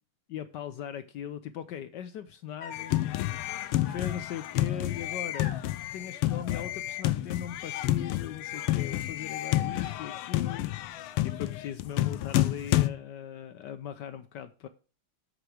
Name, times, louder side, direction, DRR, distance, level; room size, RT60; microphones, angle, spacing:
voice 1, 0.3-3.1 3.9-5.5 5.9-10.9 11.2-14.7, left 9 dB, 70° left, 1.1 m, -39 dB
sound 1, 2.6-3.0 3.8-4.5 5.3-5.7 6.3-7.2 7.4-8.0 8.4-9.0 9.7-10.6 10.9-11.7, left 6 dB, 50° left, 1.9 m, -48 dB
sound 2, 2.7-12.9, left 15 dB, 85° left, 1.6 m, -29 dB
8.1 x 8.0 x 4.8 m
omnidirectional pair, 2.4 m